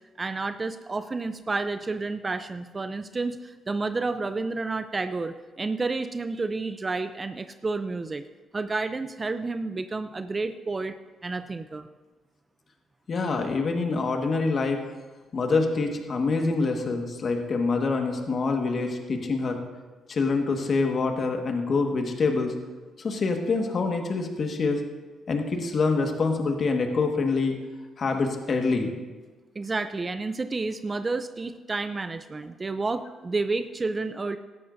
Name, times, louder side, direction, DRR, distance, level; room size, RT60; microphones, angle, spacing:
voice 1, 0.2-8.3 8.5-11.9 29.6-34.4, right 3 dB, 25° right, 10 dB, 0.5 m, -30 dB
voice 2, 13.1-14.8 15.3-19.6 20.1-22.5 23.0-24.8 25.3-27.6 28.0-28.9, left 4 dB, 50° left, 3 dB, 1.6 m, -25 dB
17.0 x 13.0 x 2.7 m, 1.3 s
cardioid pair, 90°, 0 cm